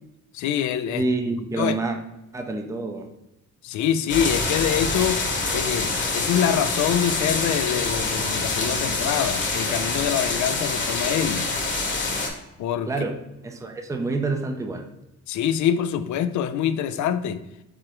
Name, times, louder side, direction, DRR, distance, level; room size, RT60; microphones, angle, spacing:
voice 1, 0.3-1.0 1.6-1.8 3.6-5.3 5.5-11.4 12.6-12.9 15.3-17.4, left 9 dB, 70° left, 12 dB, 0.5 m, -25 dB
voice 2, 0.9-2.0 2.3-3.1 12.9-13.1 13.4-14.9, right 3 dB, 10° right, 5 dB, 0.5 m, -27 dB
sound 1, 4.1-12.3, left 3 dB, 40° left, 1.1 m, -26 dB
sound 2, 9.3-9.6 10.7-11.1, right 3 dB, 45° right, 1.2 m, -45 dB
4.8 x 3.6 x 3.0 m, 0.92 s
cardioid pair, 90°, 30 cm